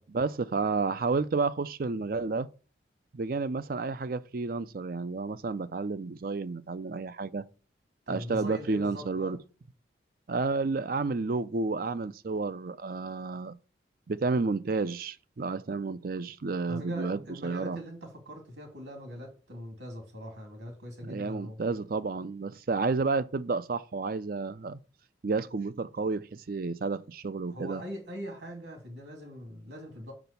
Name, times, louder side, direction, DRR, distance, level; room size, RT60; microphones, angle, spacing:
voice 1, 0.1-2.5 3.1-7.4 8.1-9.4 10.3-13.6 14.1-17.8 21.0-24.8 25.2-27.8, right 4 dB, 50° right, 0.5 m, -31 dB
voice 2, 8.1-9.3 16.7-21.6 27.5-30.1, equal, 75° right, 2.7 m, -41 dB
6.0 x 5.9 x 6.9 m
head